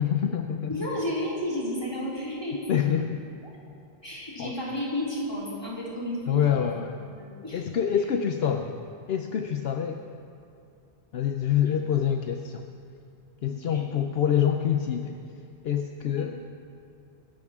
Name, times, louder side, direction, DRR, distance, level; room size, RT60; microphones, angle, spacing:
voice 1, 0.0-0.9 2.7-3.2 4.4-4.5 6.3-7.0 7.5-8.8 9.1-10.0 11.1-12.6 13.4-15.2 15.6-16.4, left 9 dB, 75° left, 5 dB, 0.9 m, -26 dB
voice 2, 0.7-2.6 4.0-6.2 6.5-6.6 6.9-7.6 11.6-11.8 13.4-13.9 16.0-16.2, left 1 dB, 25° left, -6 dB, 3.6 m, -32 dB
24.5 x 13.0 x 3.6 m, 2.4 s
omnidirectional pair, 1.1 m